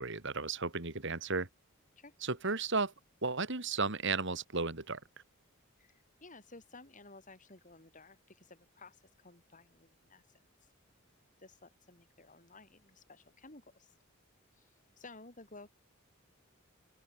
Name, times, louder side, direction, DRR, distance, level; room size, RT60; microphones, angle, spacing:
voice 1, 0.0-1.5 2.2-2.9 3.2-5.0, right 4 dB, 60° right, 2.8 m, -34 dB
voice 2, 5.8-10.7 11.4-14.0 14.5-15.7, left 3 dB, 35° left, 4.5 m, -55 dB
open air
head